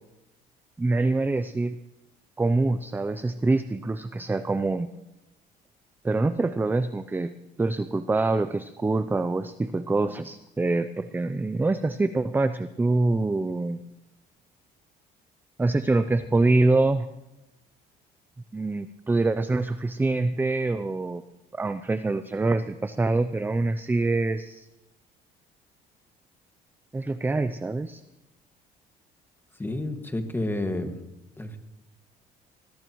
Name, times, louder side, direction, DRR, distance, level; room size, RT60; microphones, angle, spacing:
voice 1, 0.8-1.7 2.4-4.9 6.0-7.3 7.6-13.8 15.6-17.1 18.5-21.2 21.5-24.7 26.9-28.0, right 2 dB, 10° right, 12 dB, 0.5 m, -25 dB
voice 2, 29.6-31.0 31.4-31.6, left 1 dB, 10° left, 5 dB, 1.9 m, -30 dB
21.0 x 20.5 x 3.1 m, 0.97 s
cardioid pair, 110°, 17 cm